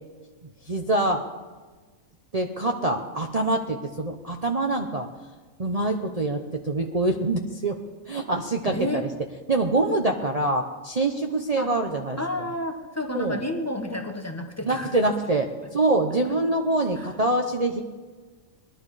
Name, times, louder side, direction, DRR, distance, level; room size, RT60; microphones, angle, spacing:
voice 1, 0.4-1.2 2.3-5.1 5.6-7.8 8.1-9.1 9.5-12.2 13.1-13.4 14.6-17.8, right 2 dB, 30° right, 1 dB, 0.8 m, -25 dB
voice 2, 8.7-9.1 11.6-11.7 12.2-14.9 17.0-17.1, left 1 dB, 10° left, 5 dB, 1.2 m, -30 dB
21.0 x 11.5 x 4.9 m, 1.3 s
omnidirectional pair, 1.4 m